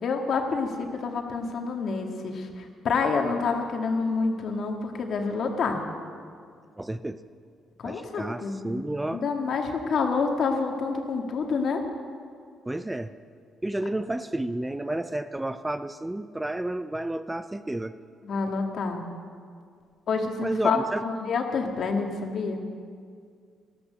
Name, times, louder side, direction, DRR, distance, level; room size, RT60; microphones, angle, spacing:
voice 1, 0.0-5.8 7.8-8.8 9.1-11.8 18.2-19.1 20.1-22.6, left 4 dB, 60° left, 3 dB, 1.9 m, -28 dB
voice 2, 6.8-7.2 7.8-9.2 12.7-13.1 13.6-17.9 20.4-21.0, right 1 dB, 10° right, 12 dB, 0.5 m, -31 dB
13.0 x 13.0 x 6.5 m, 2.2 s
cardioid pair, 90°, 0 cm